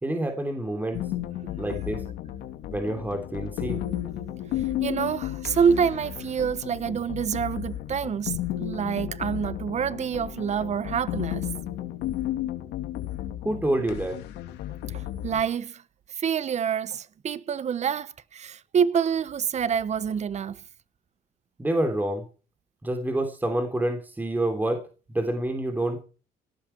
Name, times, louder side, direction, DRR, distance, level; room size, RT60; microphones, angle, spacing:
voice 1, 0.0-1.0 1.6-2.0 2.7-3.8 13.4-14.2 21.6-22.3 22.8-24.9 25.1-26.0, right 1 dB, 10° right, 3.2 m, -27 dB
sound 1, 0.9-15.4, left 13 dB, 85° left, 2.4 m, -33 dB
voice 2, 4.5-11.5 14.9-15.8 16.1-20.6, right 7 dB, 40° right, 1.2 m, -27 dB
17.5 x 12.5 x 4.6 m
cardioid pair, 110°, 17 cm